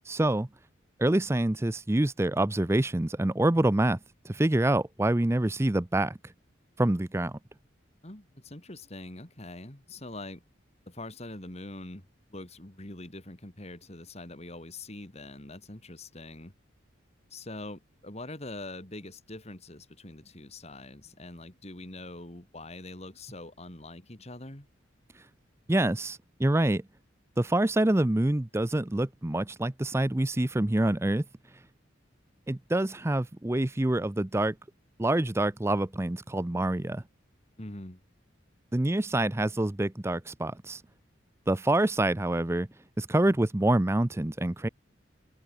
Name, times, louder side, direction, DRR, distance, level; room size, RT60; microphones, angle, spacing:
voice 1, 0.1-0.5 1.0-4.0 4.2-6.2 6.8-7.4 25.7-26.8 27.4-31.2 32.5-34.6 35.0-37.0 38.7-40.8 41.5-42.7 43.0-44.7, right 1 dB, 15° right, 0.5 m, -26 dB
voice 2, 8.0-10.4 10.9-12.0 12.3-16.5 17.3-24.7 37.6-38.0, left 2 dB, 35° left, 2.9 m, -43 dB
head